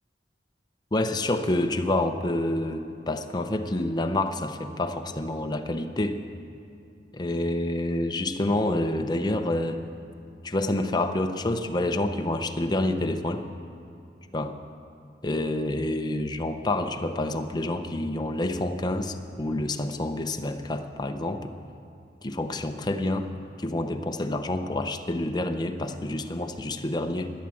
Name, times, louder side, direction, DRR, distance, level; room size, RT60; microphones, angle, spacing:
voice 1, 0.9-6.2 7.1-9.8 10.4-13.4 14.3-14.6 15.2-21.5 22.2-23.3 23.6-27.3, left 1 dB, 25° left, 6 dB, 0.6 m, -28 dB
11.5 x 9.6 x 7.1 m, 2.6 s
head